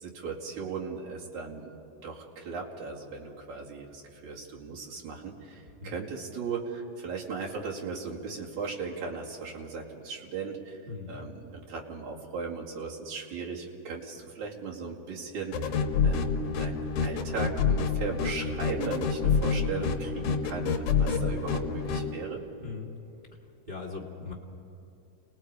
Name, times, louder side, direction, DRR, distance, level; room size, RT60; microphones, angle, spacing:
voice 1, 0.0-1.7 2.0-10.8 11.1-15.7 16.0-22.4, right 5 dB, 55° right, -3 dB, 3.3 m, -37 dB
voice 2, 10.9-11.2 22.6-22.9 23.7-24.3, left 4 dB, 30° right, -4 dB, 0.8 m, -39 dB
sound 1, 15.5-22.1, left 5 dB, 65° left, 2.4 m, -28 dB
30.0 x 19.5 x 4.8 m, 2.8 s
omnidirectional pair, 4.3 m